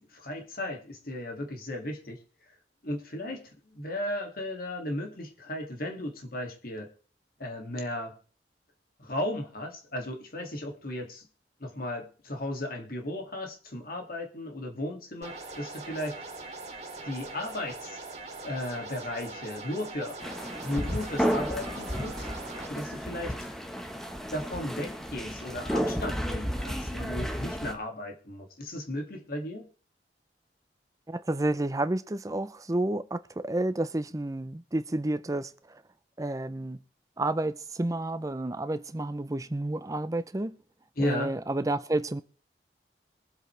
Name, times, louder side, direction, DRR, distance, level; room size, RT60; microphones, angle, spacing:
voice 1, 0.0-2.2 2.8-6.9 7.4-8.1 9.0-11.3 11.6-16.2 17.0-18.0 18.4-20.2 20.6-22.3 22.7-23.4 24.3-29.7 41.0-41.3, left 1 dB, 55° left, 2.4 m, -35 dB
sound 1, 15.2-22.7, right 3 dB, 40° right, 3.1 m, -42 dB
sound 2, 20.2-27.7, equal, 5° left, 1.3 m, -32 dB
voice 2, 31.1-35.8 36.2-36.8 37.2-40.6 41.0-42.2, right 2 dB, 20° right, 0.6 m, -30 dB
22.0 x 8.1 x 3.3 m
head